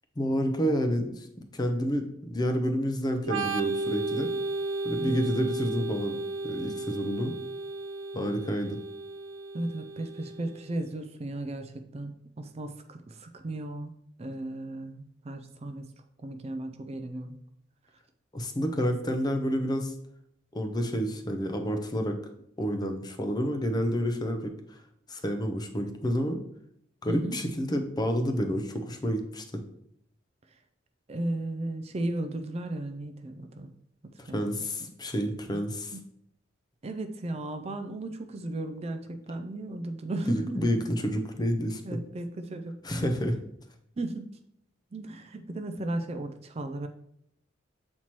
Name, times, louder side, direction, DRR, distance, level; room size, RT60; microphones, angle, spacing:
voice 1, 0.2-1.3 1.5-4.3 4.8-6.2 6.4-7.3 8.1-8.8 18.3-19.9 20.5-22.2 22.6-24.8 25.1-26.4 27.0-29.6 34.2-35.9 40.3-42.0 42.8-43.3, equal, 20° left, 6 dB, 0.5 m, -29 dB
Organ, 3.2-10.7, right 3 dB, 90° right, 0.5 m, -34 dB
voice 2, 9.5-13.9 14.2-15.9 16.2-17.4 27.1-27.4 31.1-33.7 34.3-34.5 35.5-35.6 35.9-36.0 36.8-40.6 41.8-43.1 44.0-44.3 44.9-46.9, right 2 dB, 30° right, 7 dB, 0.4 m, -35 dB
7.5 x 4.3 x 3.0 m, 0.72 s
head